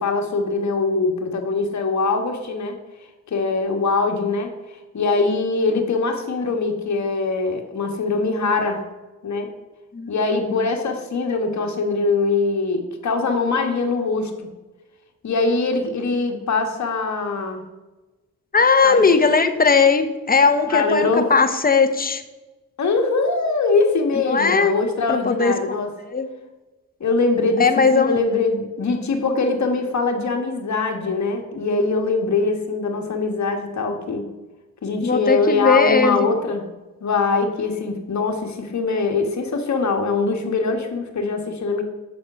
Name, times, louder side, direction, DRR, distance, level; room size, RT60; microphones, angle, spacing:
voice 1, 0.0-2.8 3.3-4.5 4.9-8.8 9.2-9.5 10.1-14.5 15.2-17.6 18.8-19.0 20.7-21.3 22.8-25.9 27.0-34.3 34.8-36.7 37.0-41.8, left 3 dB, 50° left, 4 dB, 1.5 m, -22 dB
voice 2, 18.5-22.2 24.3-24.7 25.1-25.5 26.1-26.3 27.6-28.2 35.0-36.3, left 4 dB, 25° left, 8 dB, 0.9 m, -18 dB
7.2 x 4.2 x 6.2 m, 1.1 s
supercardioid pair, 60°, 35 cm